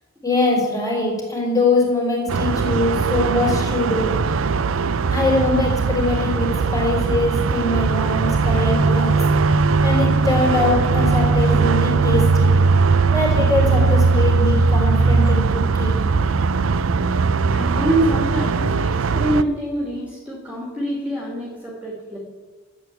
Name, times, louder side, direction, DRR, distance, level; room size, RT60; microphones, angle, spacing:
voice 1, 0.2-4.1 5.1-9.2 9.8-12.6 13.1-16.0, left 2 dB, 15° left, -2 dB, 4.3 m, -22 dB
sound 1, 2.3-19.4, right 4 dB, 75° right, 0.5 m, -19 dB
voice 2, 17.5-22.2, right 1 dB, 5° right, -4 dB, 2.7 m, -25 dB
12.5 x 8.6 x 8.3 m, 1.3 s
head